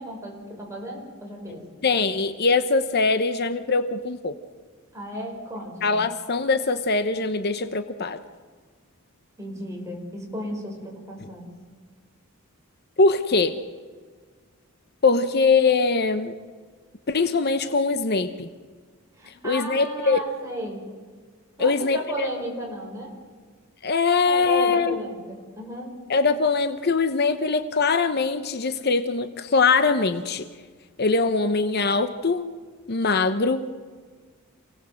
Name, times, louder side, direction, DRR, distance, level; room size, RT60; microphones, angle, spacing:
voice 1, 0.0-1.7 4.9-6.0 9.4-11.5 19.1-20.8 21.6-23.2 24.2-26.0, equal, 15° right, -1 dB, 6.0 m, -34 dB
voice 2, 1.8-4.3 5.8-8.2 13.0-13.6 15.0-16.4 17.1-18.5 19.3-20.2 21.6-22.3 23.8-25.0 26.1-30.5 31.0-32.4 32.9-33.7, left 4 dB, 45° left, 10 dB, 0.9 m, -22 dB
28.0 x 18.0 x 7.8 m, 1.5 s
head